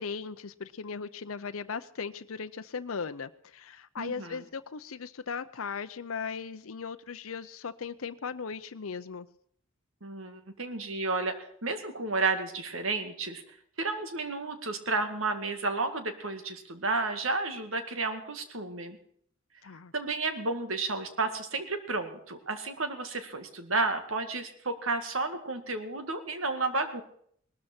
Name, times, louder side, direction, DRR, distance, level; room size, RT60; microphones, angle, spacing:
voice 1, 0.0-9.3 19.6-19.9, left 5 dB, 90° left, 10 dB, 0.7 m, -38 dB
voice 2, 4.0-4.4 10.0-13.4 13.8-19.0 19.9-27.0, right 3 dB, 75° right, 8 dB, 2.0 m, -32 dB
19.0 x 13.0 x 4.4 m, 0.64 s
head